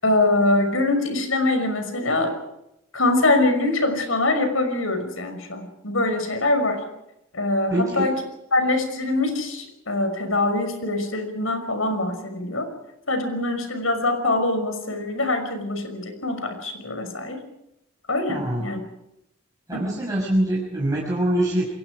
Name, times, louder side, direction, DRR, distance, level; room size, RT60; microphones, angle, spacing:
voice 1, 0.0-2.3 2.9-6.8 7.3-8.1 8.5-12.7 13.1-17.4 18.1-18.8 19.7-19.9, left 2 dB, 85° left, 7 dB, 5.8 m, -23 dB
voice 2, 7.7-8.1 18.3-18.6 19.7-21.7, right 1 dB, 15° right, -5 dB, 5.9 m, -24 dB
29.5 x 22.5 x 5.0 m, 0.84 s
head